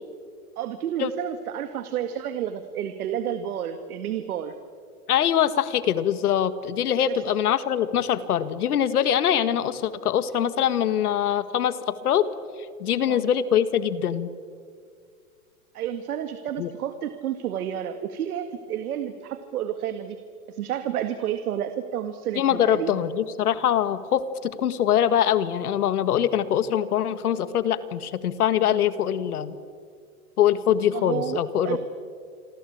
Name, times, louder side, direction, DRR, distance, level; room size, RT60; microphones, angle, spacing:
voice 1, 0.6-4.6 7.0-7.3 13.0-13.3 15.7-20.2 20.5-23.0 28.6-28.8 30.9-31.8, right 10 dB, 80° right, 9 dB, 2.0 m, -30 dB
voice 2, 5.1-12.3 12.8-14.3 16.6-16.7 22.4-29.5 30.4-31.8, left 10 dB, 90° left, 13 dB, 1.9 m, -23 dB
28.0 x 23.5 x 8.8 m, 2.1 s
supercardioid pair, 145°, 43 cm